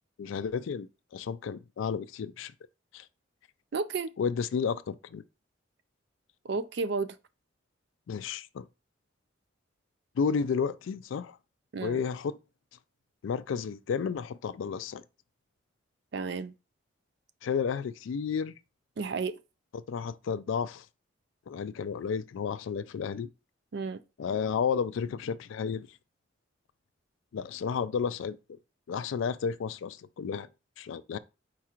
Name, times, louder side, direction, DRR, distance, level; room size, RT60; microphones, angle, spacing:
voice 1, 0.2-2.5 2.9-3.1 4.2-5.2 8.1-8.7 10.2-11.4 11.8-12.4 13.2-15.0 17.4-18.5 19.7-20.9 21.5-23.3 24.2-25.9 27.3-28.4 28.9-30.5 30.8-31.2, left 6 dB, 75° left, 0.3 m, -32 dB
voice 2, 3.7-4.1 6.4-7.2 11.7-12.0 16.1-16.5 19.0-19.4 23.7-24.0, right 4 dB, 55° right, 0.4 m, -32 dB
4.6 x 2.5 x 4.3 m
head